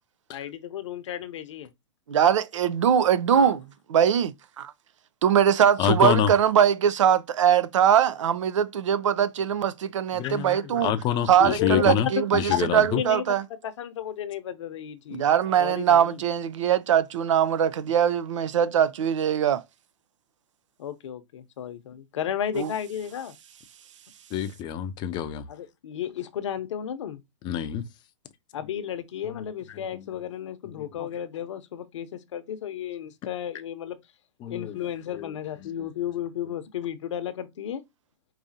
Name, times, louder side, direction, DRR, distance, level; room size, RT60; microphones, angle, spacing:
voice 1, 0.3-1.7 3.3-3.5 10.2-10.3 11.4-12.2 12.5-13.3 13.6-15.2 15.6-16.2 20.8-23.3 25.5-27.2 28.5-34.0 34.5-37.8, left 10 dB, 70° left, 0.8 m, -33 dB
voice 2, 2.1-3.6 3.9-4.7 5.2-10.9 11.2-13.5 15.1-19.6 22.5-22.7, right 9 dB, 75° right, 0.5 m, -22 dB
voice 3, 5.8-6.3 10.1-13.0 24.3-25.4 27.4-27.8 29.3-29.4 30.8-30.9 34.4-34.8 35.1-35.3, left 9 dB, 30° left, 0.5 m, -27 dB
4.9 x 2.7 x 2.6 m
hypercardioid pair, 130°, 16 cm